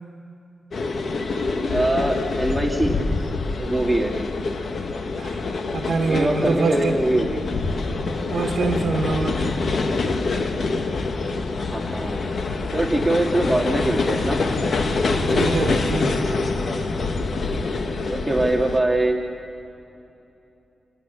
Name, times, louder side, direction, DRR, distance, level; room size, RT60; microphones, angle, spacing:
sound 1, 0.7-18.8, left 3 dB, 65° left, 1.5 m, -25 dB
voice 1, 1.7-3.0 3.6-4.1 6.0-7.4 11.6-12.2 12.7-14.4 18.1-19.2, right 1 dB, 10° right, 0 dB, 2.3 m, -23 dB
voice 2, 5.7-7.0 8.3-9.6 15.3-16.2, right 4 dB, 75° right, 2 dB, 1.5 m, -25 dB
27.5 x 16.0 x 6.9 m, 2.8 s
cardioid pair, 70°, 0 cm